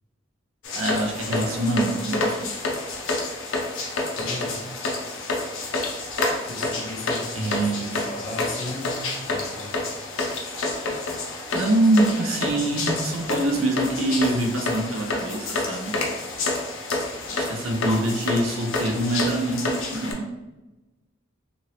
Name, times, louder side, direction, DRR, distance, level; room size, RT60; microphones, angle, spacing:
sound 1, 0.6-20.1, left 2 dB, 80° left, 0.6 m, -29 dB
voice 1, 0.7-2.5 7.3-8.0 11.5-16.0 17.3-20.3, right 1 dB, 80° right, 2 dB, 0.6 m, -24 dB
voice 2, 4.2-4.8 6.5-9.8, left 1 dB, 35° left, 2 dB, 0.4 m, -36 dB
2.9 x 2.6 x 3.0 m, 1.1 s
head